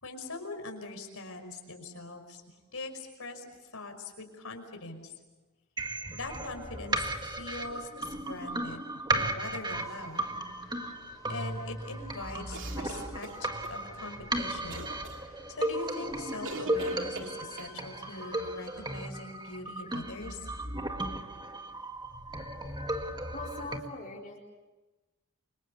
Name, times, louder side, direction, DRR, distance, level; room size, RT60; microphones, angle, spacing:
voice 1, 0.0-2.4 2.7-3.5 3.7-5.1 6.1-8.8 9.1-10.3 11.3-14.9 15.3-20.5, left 3 dB, 70° left, 5 dB, 5.4 m, -42 dB
sound 1, 5.8-23.8, right 1 dB, 20° right, 1.8 m, -35 dB
sound 2, 9.7-19.1, left 2 dB, 15° left, 3.3 m, -56 dB
sound 3, 12.5-13.8 14.7-15.2 16.4-17.7, right 3 dB, 60° right, 2.8 m, -41 dB
voice 2, 23.3-24.4, left 2 dB, 40° left, -3 dB, 4.4 m, -41 dB
29.5 x 25.5 x 7.1 m, 1.1 s
head